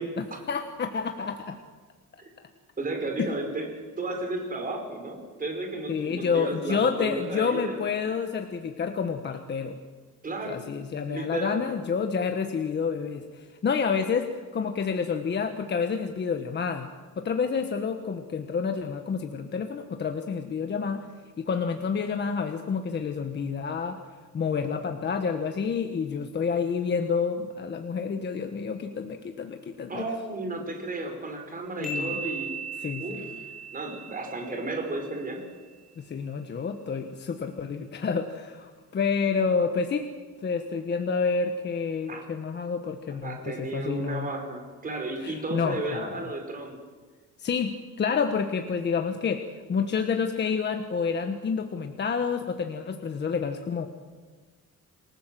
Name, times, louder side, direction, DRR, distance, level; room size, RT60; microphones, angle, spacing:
voice 1, 0.2-1.6 3.2-3.3 5.9-9.8 10.5-16.9 17.2-21.1 21.4-24.0 24.3-30.1 31.8-32.2 32.8-33.3 36.0-40.0 40.4-44.3 45.2-46.1 47.4-53.9, left 5 dB, 35° left, 6 dB, 1.3 m, -29 dB
voice 2, 2.8-3.7 4.0-7.8 10.2-10.6 11.0-11.6 29.9-32.5 33.0-33.3 33.7-35.4 42.1-42.2 43.2-46.8, right 2 dB, 25° right, 3 dB, 4.9 m, -33 dB
Aud Energy chime high note pure, 31.8-35.4, right 4 dB, ahead, 5.6 m, -37 dB
28.5 x 19.5 x 7.7 m, 1.4 s
cardioid pair, 170°, 32 cm